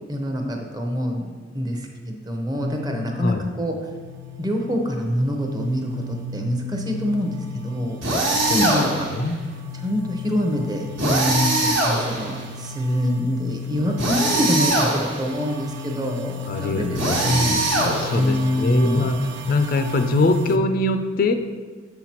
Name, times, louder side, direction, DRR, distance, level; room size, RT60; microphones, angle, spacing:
voice 1, 0.1-3.7 4.4-7.3 7.6-8.0 8.5-9.1 9.7-17.6 18.1-19.0, equal, 20° right, 2 dB, 0.6 m, -25 dB
sound 1, 2.6-20.6, left 4 dB, 60° right, 0.4 m, -35 dB
sound 2, 8.0-9.2 11.0-12.4 14.0-15.3 16.9-18.4, right 1 dB, 80° right, 1.3 m, -22 dB
voice 2, 16.5-19.2 19.5-21.4, left 2 dB, 45° left, 7 dB, 0.3 m, -23 dB
6.6 x 5.7 x 2.9 m, 1.5 s
head